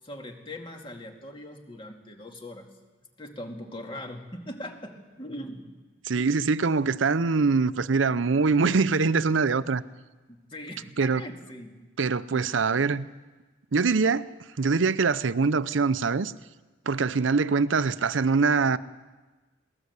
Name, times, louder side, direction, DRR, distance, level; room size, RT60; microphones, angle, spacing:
voice 1, 0.0-2.7 3.2-5.7 10.3-11.8, left 1 dB, 25° left, 2.3 m, -40 dB
voice 2, 6.1-9.8 11.0-11.2 12.0-13.1 13.7-14.3 14.6-16.3 16.9-18.8, right 4 dB, 85° right, 0.6 m, -23 dB
21.5 x 18.5 x 8.2 m
head